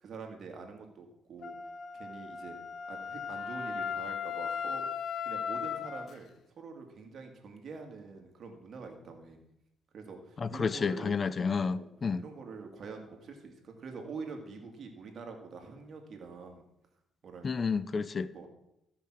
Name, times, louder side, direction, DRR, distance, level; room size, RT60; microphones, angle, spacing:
voice 1, 0.0-1.6 1.9-2.6 2.9-4.9 5.2-6.3 6.6-9.4 9.9-11.1 11.6-11.9 12.2-16.6 17.2-17.7 18.3-18.5, right 4 dB, 60° right, 2.1 m, -45 dB
Wind instrument woodwind instrument, 1.4-6.1, left 7 dB, 60° left, 0.8 m, -37 dB
voice 2, 10.4-12.2 17.4-18.3, left 5 dB, 40° left, 0.4 m, -30 dB
13.5 x 5.9 x 6.1 m
cardioid pair, 90°, 0 cm